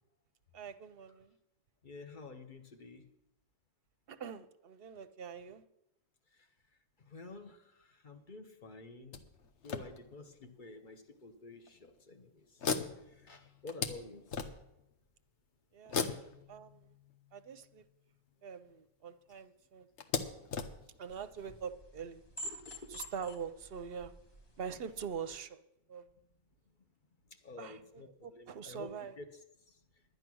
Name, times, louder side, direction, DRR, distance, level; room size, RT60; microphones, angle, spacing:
voice 1, 0.5-1.3 4.1-5.6 15.7-16.8 17.3-17.8 18.4-19.9 21.0-22.2 22.9-24.1 24.6-25.6 25.9-26.0 27.6-29.1, right 7 dB, 55° right, 11 dB, 0.8 m, -44 dB
voice 2, 1.8-3.1 6.3-6.5 7.0-9.3 9.6-12.7 13.0-14.4 16.0-16.3 22.4-23.1 27.3-29.3 29.7-29.8, left 3 dB, 40° left, 6 dB, 1.2 m, -51 dB
sound 1, 9.1-10.5 11.2-11.3 11.7-11.9 12.6-14.9 15.9-17.5 18.7-18.8 19.1-19.2 20.0-21.6, left 5 dB, 65° left, 1.2 m, -39 dB
sound 2, 21.1-25.4, equal, 20° left, 1.2 m, -49 dB
10.5 x 10.0 x 6.2 m, 0.86 s
omnidirectional pair, 1.3 m